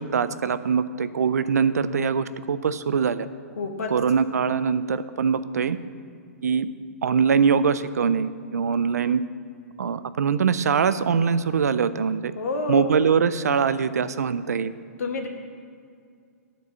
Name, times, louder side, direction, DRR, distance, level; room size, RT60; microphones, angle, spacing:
voice 1, 0.0-3.3 3.9-5.8 6.4-6.7 7.0-9.2 9.8-12.3 12.7-14.7, right 6 dB, 85° right, 13 dB, 0.4 m, -23 dB
voice 2, 3.6-3.9 12.3-12.9 15.0-15.3, left 3 dB, 75° left, 4 dB, 1.3 m, -28 dB
11.0 x 4.6 x 6.8 m, 2.3 s
hypercardioid pair, 135°, 8 cm